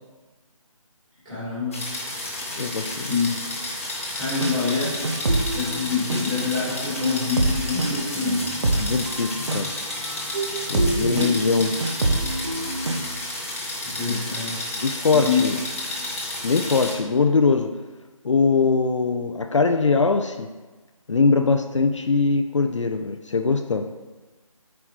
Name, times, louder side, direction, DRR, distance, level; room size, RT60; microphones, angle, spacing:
voice 1, 1.2-1.9 2.8-3.4 4.2-5.2 5.5-8.4 11.0-11.3 13.8-14.7 15.1-15.6, left 5 dB, 10° right, -14 dB, 2.0 m, -27 dB
sound 1, 1.7-17.0, left 1 dB, 25° left, 0.9 m, -32 dB
voice 2, 2.6-3.2 8.8-9.7 10.7-11.7 14.1-14.2 14.8-15.6 16.4-17.7 18.2-20.5 21.1-23.9, left 4 dB, 60° left, 7 dB, 0.4 m, -22 dB
sound 2, 4.4-4.5 4.8-6.5 7.0-13.2, right 2 dB, 55° right, 0.8 m, -26 dB
7.3 x 4.7 x 3.0 m, 1.2 s
figure-of-eight pair, 175°, 18 cm